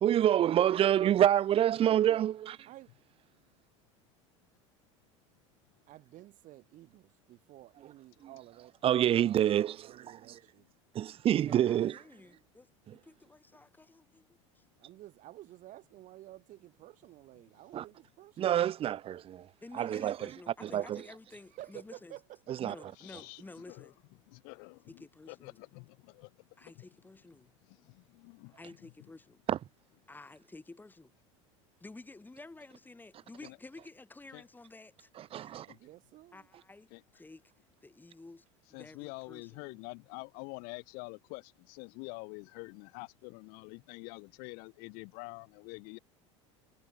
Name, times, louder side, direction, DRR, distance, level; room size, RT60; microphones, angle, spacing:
voice 1, 0.0-2.6 8.2-8.3 8.8-10.4 10.9-12.0 12.9-13.0 17.7-17.9 18.4-19.5 19.8-20.3 20.6-21.0 22.5-22.7 29.5-29.6 35.2-35.7, right 11 dB, 35° right, 0.6 m, -27 dB
voice 2, 0.7-1.1 1.8-2.2 2.7-2.9 5.9-8.7 9.2-10.7 14.8-18.5 21.3-22.2 22.5-22.6 22.8-22.9 35.4-36.4, right 15 dB, 50° right, 2.8 m, -52 dB
voice 3, 11.3-14.6 19.6-22.2 22.6-24.0 24.9-25.6 26.6-27.5 28.5-29.4 30.1-31.1 31.8-35.5 36.3-37.4 37.8-39.8, left 2 dB, 10° left, 4.0 m, -52 dB
voice 4, 23.0-23.4 23.7-23.9 24.3-24.8 25.3-26.3 26.7-26.9 27.7-28.6 33.4-33.6 34.3-34.4 35.7-35.8 36.9-37.0 38.7-46.0, left 35 dB, 65° left, 3.1 m, -46 dB
hypercardioid pair, 90°, 16 cm